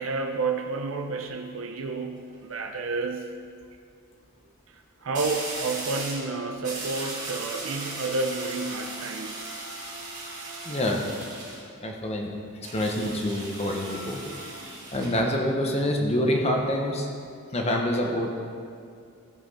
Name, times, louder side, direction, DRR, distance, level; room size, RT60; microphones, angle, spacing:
voice 1, 0.0-3.3 4.7-9.4, right 3 dB, 70° right, 4 dB, 0.6 m, -30 dB
sound 1, 2.0-2.3 5.1-6.3 6.6-11.6 12.6-15.2, right 2 dB, 35° right, 2.7 m, -37 dB
voice 2, 10.6-11.1 11.8-12.3 12.7-14.2 14.9-17.1 17.5-18.3, left 1 dB, 30° left, 1 dB, 1.1 m, -26 dB
14.0 x 5.9 x 4.3 m, 2.3 s
head